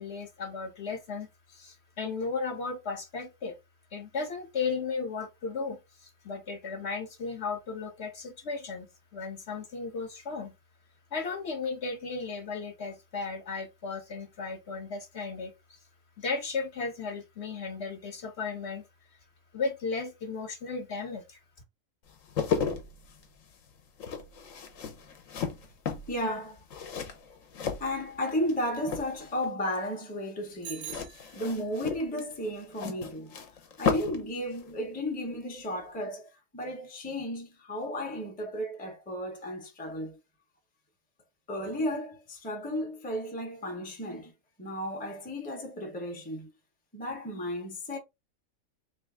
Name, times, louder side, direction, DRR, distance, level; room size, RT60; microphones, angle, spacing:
voice 1, 0.0-3.6 3.9-8.9 9.1-10.5 11.1-15.5 16.2-18.8 19.5-21.4, left 4 dB, 55° left, 1.2 m, -35 dB
sound 1, 22.1-28.5 28.8-29.5 30.8-34.3 34.5-34.7, left 6 dB, 70° left, 1.2 m, -34 dB
voice 2, 26.1-26.6 27.8-31.0 31.3-33.5 33.8-40.2 41.5-44.3 44.6-46.5 46.9-48.0, left 1 dB, 10° left, 0.7 m, -34 dB
Bicycle bell, 30.6-31.9, right 11 dB, 65° right, 0.8 m, -44 dB
3.3 x 3.2 x 3.6 m
omnidirectional pair, 1.5 m